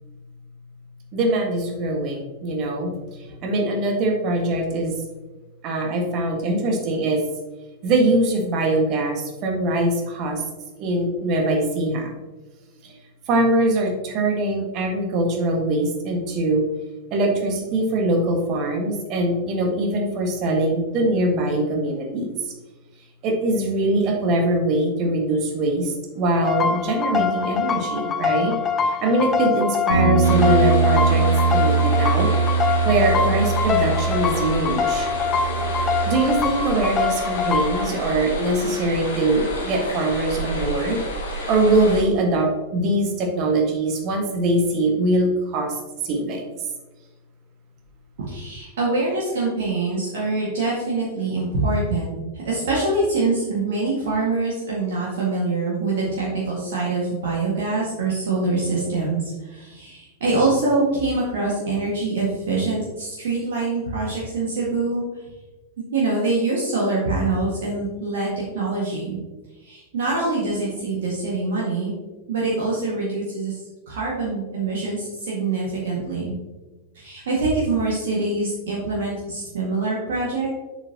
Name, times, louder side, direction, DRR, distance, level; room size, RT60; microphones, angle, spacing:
voice 1, 1.1-5.0 5.6-7.2 7.8-10.4 10.8-12.1 12.8-13.0 13.3-16.7 17.1-22.5 23.2-32.3 32.8-35.1 36.0-41.0 41.3-46.4, right 1 dB, 40° right, 2 dB, 1.6 m, -22 dB
sound 1, 26.4-37.9, left 5 dB, 25° left, 0.6 m, -24 dB
Bass guitar, 29.9-34.7 35.0-36.1, right 5 dB, 90° left, 1.5 m, -21 dB
sound 2, 30.2-42.0, equal, 70° left, 2.1 m, -31 dB
voice 2, 48.3-65.2 65.9-69.2 69.6-71.9 72.3-73.6 73.9-76.3 76.9-80.5, right 3 dB, 60° right, -5 dB, 1.9 m, -24 dB
7.9 x 7.1 x 2.9 m, 1.2 s
figure-of-eight pair, 90°, 0 cm